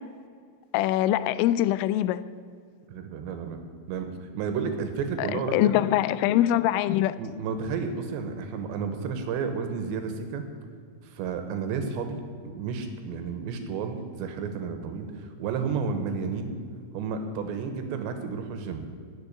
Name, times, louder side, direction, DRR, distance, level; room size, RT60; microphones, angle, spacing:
voice 1, 0.7-2.2 5.2-7.2, left 13 dB, 90° left, 15 dB, 3.1 m, -23 dB
voice 2, 2.9-3.6 3.9-5.7 7.2-10.4 11.0-12.2 12.5-16.6 16.9-18.8, right 5 dB, 75° right, 7 dB, 3.0 m, -31 dB
12.0 x 7.3 x 9.8 m, 2.2 s
omnidirectional pair, 5.6 m